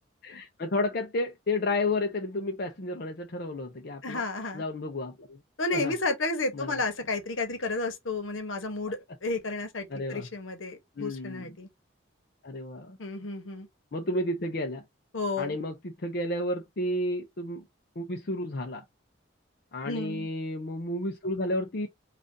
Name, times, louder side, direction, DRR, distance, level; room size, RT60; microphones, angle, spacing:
voice 1, 0.2-4.2 4.5-5.4 5.7-5.9 6.5-6.7 9.9-10.3 11.0-11.6 12.4-13.0 13.9-14.8 15.4-17.6 18.0-18.8 19.7-21.9, left 1 dB, 50° left, 0.6 m, -31 dB
voice 2, 4.0-4.6 5.6-11.7 13.0-13.7 15.1-15.6 19.8-20.3, left 3 dB, 80° left, 1.1 m, -32 dB
3.8 x 2.5 x 3.7 m
head